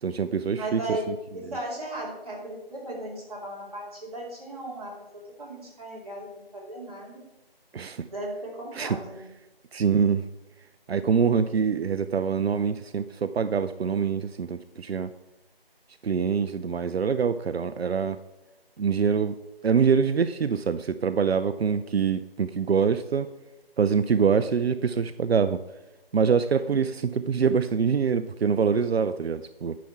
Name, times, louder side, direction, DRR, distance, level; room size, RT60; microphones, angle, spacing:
voice 1, 0.0-1.1 7.7-8.1 8.7-9.0 9.7-10.2 10.9-15.1 16.0-18.2 18.8-19.4 19.6-23.3 23.8-25.6 26.1-29.8, right 6 dB, 85° right, 12 dB, 0.5 m, -25 dB
voice 2, 0.5-1.1 1.3-7.2 8.0-9.3, right 1 dB, 40° right, -4 dB, 2.8 m, -36 dB
10.5 x 5.8 x 4.3 m, 0.99 s
figure-of-eight pair, 170°, 30 cm